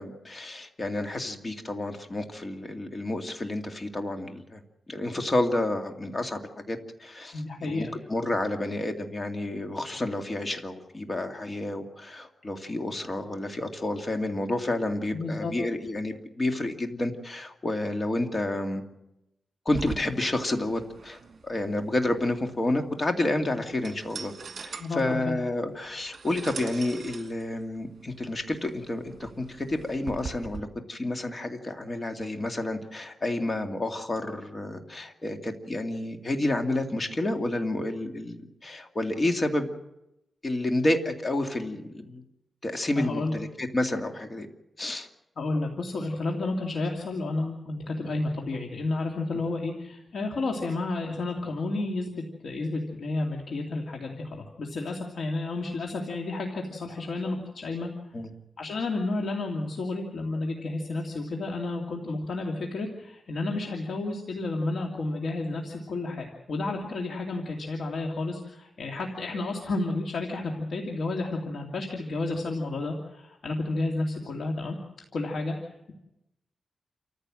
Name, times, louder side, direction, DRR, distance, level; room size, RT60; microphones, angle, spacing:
voice 1, 0.0-4.6 4.9-6.4 6.7-18.8 19.7-24.3 24.6-39.7 40.4-42.2 42.6-44.5 44.8-45.1 58.1-58.3, left 2 dB, 30° left, 4 dB, 2.4 m, -30 dB
voice 2, 7.3-7.9 15.1-15.5 24.8-25.3 42.9-43.3 45.4-57.9 58.6-74.8 75.1-75.9, left 2 dB, 70° left, 1 dB, 2.6 m, -31 dB
sound 1, 19.7-30.6, right 5 dB, 60° right, 1.6 m, -43 dB
28.5 x 15.0 x 7.7 m, 0.90 s
wide cardioid pair, 115°, 0 cm